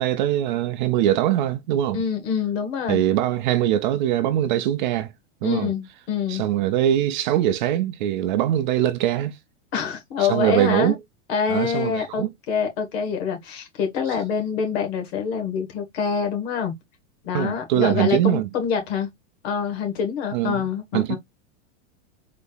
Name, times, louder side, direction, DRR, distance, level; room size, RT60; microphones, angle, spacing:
voice 1, 0.0-2.0 2.9-5.1 5.4-5.7 6.3-9.4 10.2-10.9 11.5-12.3 17.3-18.5 20.3-20.7 20.9-21.2, right 12 dB, 40° right, 0.5 m, -22 dB
voice 2, 1.9-3.0 5.4-6.4 9.7-10.9 11.3-16.7 17.2-19.1 19.4-21.2, left 6 dB, 60° left, 1.9 m, -26 dB
4.1 x 2.7 x 3.8 m
supercardioid pair, 165°, 36 cm